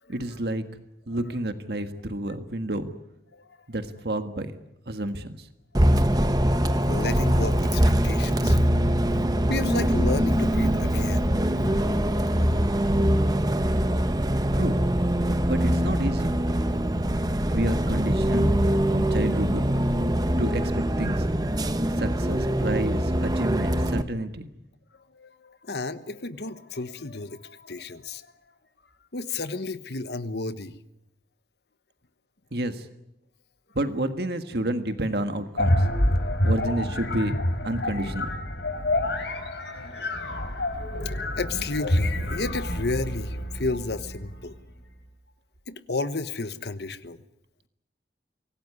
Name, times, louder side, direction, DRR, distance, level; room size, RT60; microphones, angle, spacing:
voice 1, 0.1-0.6 1.1-2.9 3.7-4.5 4.9-5.4 14.5-14.8 15.5-16.3 17.5-18.5 18.9-19.6 20.4-21.2 22.0-24.5 32.5-32.8 33.7-35.8 36.4-37.3 37.6-38.4, right 1 dB, 70° right, 8 dB, 1.6 m, -29 dB
Bus, 5.7-24.0, equal, 20° right, 1.1 m, -23 dB
voice 2, 6.9-8.6 9.5-13.2 13.5-13.6 17.0-17.1 24.2-24.3 25.1-28.3 29.1-30.7 36.3-36.4 37.9-38.0 41.3-44.5 45.7-47.2, left 3 dB, 70° left, 12 dB, 1.2 m, -33 dB
sound 1, 35.6-44.4, left 1 dB, 90° left, 4.3 m, -27 dB
25.0 x 17.5 x 9.6 m, 0.87 s
head